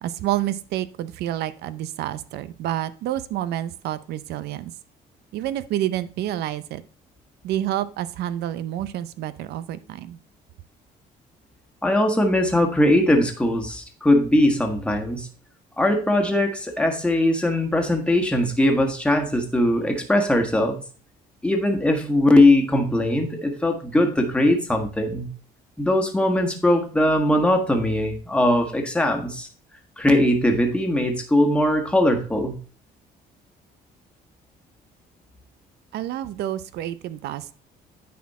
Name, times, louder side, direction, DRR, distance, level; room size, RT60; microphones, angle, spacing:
voice 1, 0.0-4.7 5.3-6.8 7.4-10.2 35.9-37.5, right 12 dB, 75° right, 15 dB, 0.6 m, -28 dB
voice 2, 11.8-15.3 15.8-20.8 21.4-25.3 25.8-29.5 30.0-32.5, left 1 dB, 5° left, 3 dB, 1.5 m, -20 dB
9.4 x 4.3 x 4.2 m, 0.40 s
cardioid pair, 110°, 17 cm